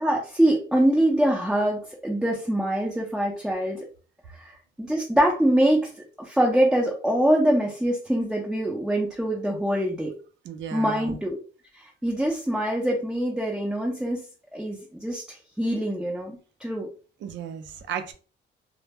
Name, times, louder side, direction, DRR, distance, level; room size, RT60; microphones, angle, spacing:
voice 1, 0.0-3.9 4.3-4.5 4.8-5.9 6.2-10.1 10.7-11.4 11.7-14.2 14.5-16.9, right 1 dB, 5° right, -2 dB, 0.5 m, -24 dB
voice 2, 10.4-11.2 17.2-18.1, right 7 dB, 70° right, 8 dB, 0.5 m, -34 dB
2.0 x 2.0 x 3.3 m, 0.38 s
cardioid pair, 90°, 20 cm